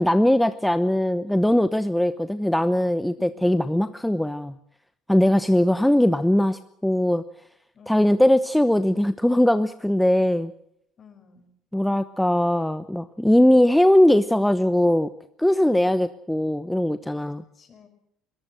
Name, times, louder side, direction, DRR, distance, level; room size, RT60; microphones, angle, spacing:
voice 1, 0.0-4.5 5.1-7.2 7.9-10.5 11.7-15.1 15.4-17.4, left 1 dB, 5° left, 12 dB, 0.9 m, -20 dB
voice 2, 5.4-6.0 7.7-8.1 11.0-11.5 17.2-17.9, left 5 dB, 40° left, 7 dB, 5.7 m, -53 dB
21.5 x 19.5 x 7.8 m, 0.72 s
hypercardioid pair, 65°, 0 cm